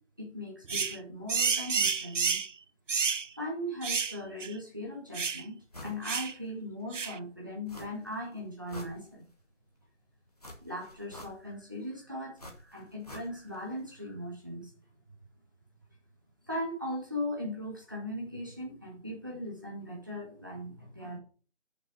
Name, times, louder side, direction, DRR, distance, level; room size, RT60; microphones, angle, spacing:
voice 1, 0.2-2.4 3.4-9.3 10.6-14.7 16.4-21.2, left 1 dB, 15° right, -2 dB, 1.4 m, -39 dB
sound 1, 0.7-1.0 1.3-2.5 2.9-3.3 3.8-4.2 4.4-4.5 5.1-5.4 6.0-6.3 6.9-7.2, right 5 dB, 90° right, 0.6 m, -29 dB
sound 2, 5.7-6.0 6.4-6.5 7.7-8.2 8.5-9.5 10.4-11.7 12.4-13.6 13.9-14.0, left 1 dB, 30° left, 1.3 m, -47 dB
6.7 x 6.0 x 6.0 m, 0.40 s
figure-of-eight pair, 170°, 36 cm